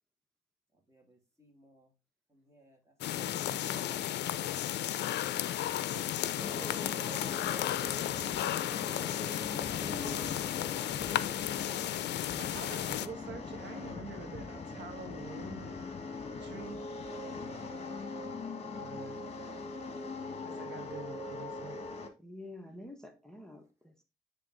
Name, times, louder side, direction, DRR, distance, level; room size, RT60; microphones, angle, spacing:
voice 1, 0.9-1.9 2.3-2.9 3.7-5.4 5.9-6.6 7.0-8.8 9.1-9.6 10.0-10.1, right 2 dB, 15° right, 2.5 m, -59 dB
sound 1, 3.0-13.1, left 13 dB, 80° left, 0.5 m, -34 dB
voice 2, 3.1-4.1 9.5-10.4 22.2-24.0, left 2 dB, 5° left, 1.0 m, -47 dB
sound 2, 6.4-22.1, left 3 dB, 35° left, 1.5 m, -41 dB
voice 3, 12.4-15.7 16.4-16.8 18.7-19.2 20.4-21.8, right 4 dB, 90° right, 1.7 m, -46 dB
8.8 x 3.5 x 3.8 m
cardioid pair, 95°, 18 cm